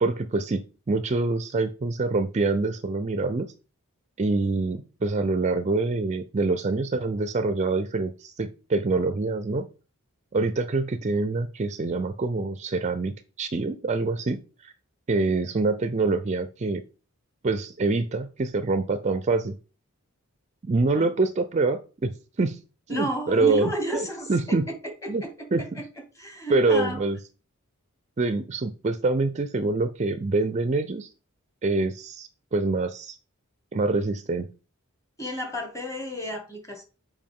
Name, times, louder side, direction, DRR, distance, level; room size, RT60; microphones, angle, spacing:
voice 1, 0.0-3.5 4.2-9.6 10.3-14.7 15.1-16.8 17.4-19.6 20.6-22.1 22.4-22.6 22.9-24.7 25.1-25.2 25.5-25.8 26.5-27.2 28.2-31.1 31.6-33.2 33.7-34.5, right 3 dB, 30° right, 0.4 m, -25 dB
voice 2, 22.9-24.8 25.0-25.8 26.2-27.0 35.2-36.8, right 1 dB, 15° left, 1.7 m, -32 dB
7.5 x 5.0 x 3.6 m
head